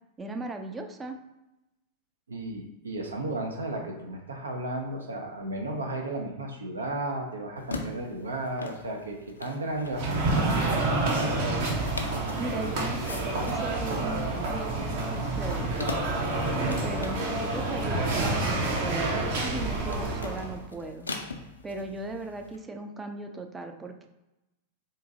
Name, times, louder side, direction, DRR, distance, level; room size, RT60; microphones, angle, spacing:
voice 1, 0.2-1.2 12.4-15.9 16.8-21.1 21.6-24.1, right 2 dB, 15° right, 4 dB, 0.4 m, -38 dB
voice 2, 2.3-10.7, right 1 dB, 75° right, 2 dB, 0.5 m, -34 dB
sound 1, 7.6-22.6, left 3 dB, 75° left, 0.4 m, -43 dB
sound 2, 9.9-20.6, right 2 dB, 50° right, 0.8 m, -28 dB
3.8 x 2.6 x 2.6 m, 0.95 s
figure-of-eight pair, 90°, 0 cm